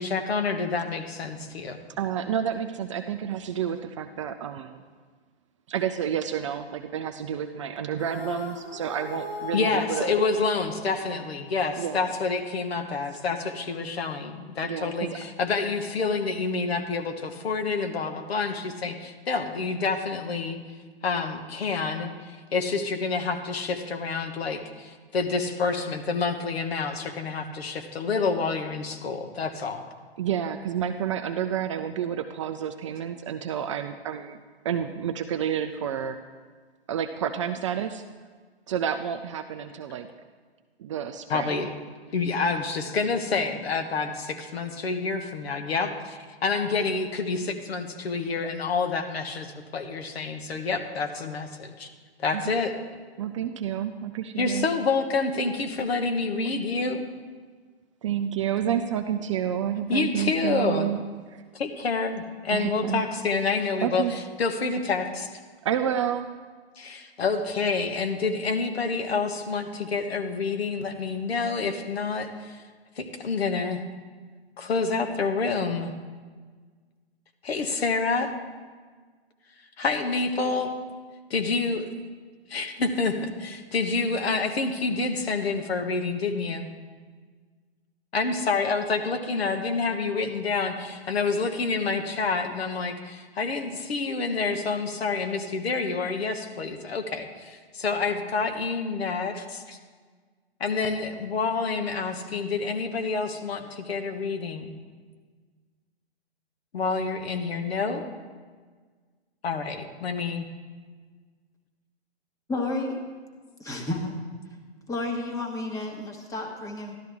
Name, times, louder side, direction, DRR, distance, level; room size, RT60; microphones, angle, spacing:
voice 1, 0.0-1.8 9.5-20.6 21.0-29.8 41.3-41.7 42.1-51.9 52.2-52.7 54.4-57.0 59.9-60.9 61.5-65.3 66.8-72.6 73.0-73.8 74.6-75.9 77.4-78.3 79.8-80.7 81.3-81.9 82.5-86.7 88.1-99.8 100.6-104.7 106.7-108.1 109.4-109.7 110.0-110.5, left 4 dB, 70° left, 6 dB, 1.3 m, -28 dB
voice 2, 2.0-4.8 5.7-10.1 11.8-12.1 14.6-15.2 30.2-34.4 34.6-36.2 36.9-38.0 38.7-40.1 40.8-41.5 52.3-52.4 53.2-54.7 58.0-61.0 61.3-61.4 62.5-63.0 63.8-64.1 65.6-66.3, right 9 dB, 30° right, 7 dB, 0.4 m, -29 dB
sound 1, 8.0-11.4, left 2 dB, 35° left, 1.5 m, -38 dB
voice 3, 112.5-113.0 113.6-114.2 114.9-117.0, left 2 dB, 10° left, 2 dB, 1.2 m, -31 dB
12.5 x 12.0 x 3.5 m, 1.5 s
hypercardioid pair, 130°, 32 cm